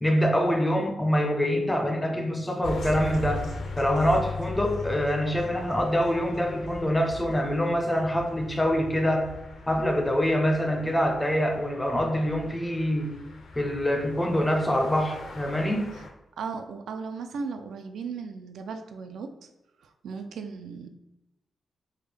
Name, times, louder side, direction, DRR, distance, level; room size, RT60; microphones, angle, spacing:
voice 1, 0.0-3.5 3.8-9.3 9.7-13.2 13.6-15.9, equal, 10° left, 2 dB, 0.4 m, -25 dB
sound 1, 2.6-16.1, left 2 dB, 75° left, 0.5 m, -39 dB
voice 2, 16.4-19.3 19.8-20.9, right 5 dB, 90° right, 6 dB, 0.3 m, -36 dB
3.4 x 2.2 x 3.2 m, 0.92 s
wide cardioid pair, 170°, 0 cm